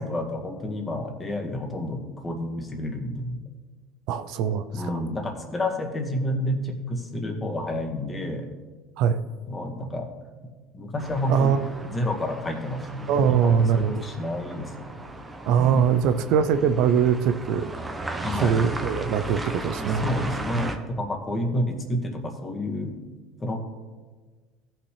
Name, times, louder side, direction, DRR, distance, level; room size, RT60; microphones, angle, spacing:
voice 1, 0.0-3.4 4.7-8.5 9.5-10.1 10.7-11.5 11.9-15.1 15.5-16.0 18.2-18.6 19.7-22.9 23.4-23.7, left 1 dB, 20° left, 2 dB, 1.8 m, -30 dB
voice 2, 4.1-4.9 9.0-9.2 11.3-11.9 13.1-14.1 15.5-17.7 18.4-20.0, right 7 dB, 70° right, 11 dB, 0.5 m, -22 dB
sound 1, 11.0-20.8, right 2 dB, 15° right, 0.9 m, -36 dB
16.0 x 5.9 x 3.3 m, 1.4 s
supercardioid pair, 105°, 0 cm